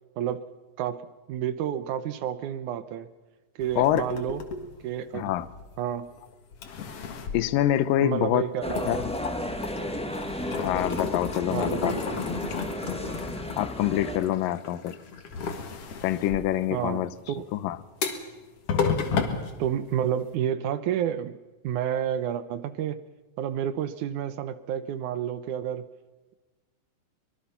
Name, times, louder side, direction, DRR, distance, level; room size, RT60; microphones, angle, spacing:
voice 1, 1.3-3.1 3.6-4.4 4.8-5.2 5.8-6.1 8.0-8.9 11.5-12.2 16.7-17.5 19.6-21.4 21.6-23.0 23.4-25.9, right 9 dB, 75° right, 2.1 m, -30 dB
sound 1, 3.6-6.1 6.5-8.3 8.6-20.3, left 5 dB, 50° left, 2.4 m, -33 dB
voice 2, 3.8-4.1 5.1-5.5 7.3-8.4 8.9-9.0 10.6-11.9 13.5-15.0 16.0-17.1 17.5-17.8, left 12 dB, 85° left, 2.5 m, -25 dB
sound 2, 8.6-14.2, equal, 5° left, 0.4 m, -33 dB
24.5 x 21.5 x 5.8 m
omnidirectional pair, 3.9 m